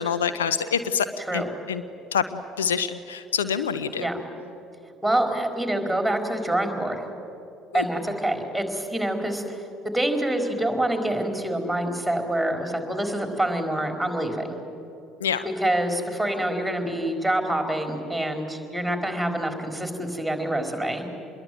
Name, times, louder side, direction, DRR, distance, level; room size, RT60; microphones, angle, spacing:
voice 1, 0.0-1.1 1.3-1.4 1.7-1.8 2.1-4.1 7.7-7.8 15.2-15.4, left 7 dB, 75° left, 12 dB, 0.8 m, -26 dB
voice 2, 1.2-1.5 4.0-4.2 5.0-7.1 7.7-14.5 15.4-21.0, right 1 dB, ahead, 5 dB, 4.5 m, -26 dB
27.0 x 21.5 x 9.4 m, 2.8 s
figure-of-eight pair, 55°, 0 cm